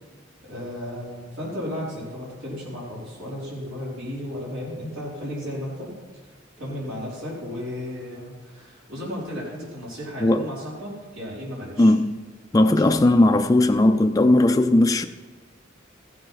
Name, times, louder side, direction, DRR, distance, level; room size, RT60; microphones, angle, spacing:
voice 1, 0.4-5.9 6.6-11.9 12.6-12.9, left 1 dB, 80° right, 4.4 m, -34 dB
voice 2, 11.8-12.2 12.5-15.1, left 1 dB, 20° left, 0.4 m, -17 dB
15.5 x 7.8 x 5.7 m
head